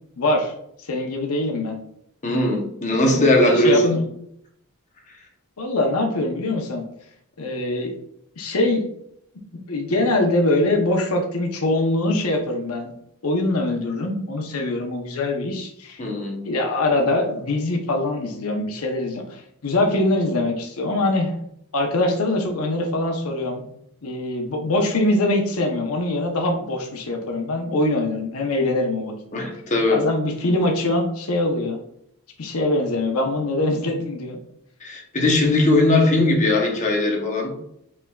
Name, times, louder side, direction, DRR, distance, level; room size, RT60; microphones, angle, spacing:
voice 1, 0.2-0.5 0.8-1.8 3.1-4.0 5.6-6.8 7.4-7.9 8.4-8.8 9.5-12.9 13.2-16.0 16.4-21.3 21.7-23.7 24.0-29.1 29.9-31.8 32.4-34.4, left 2 dB, 85° left, 2 dB, 0.8 m, -23 dB
voice 2, 2.2-4.0 16.0-16.4 29.3-30.0 34.8-37.6, left 1 dB, 35° left, 0 dB, 0.8 m, -19 dB
5.3 x 3.5 x 2.3 m, 0.72 s
head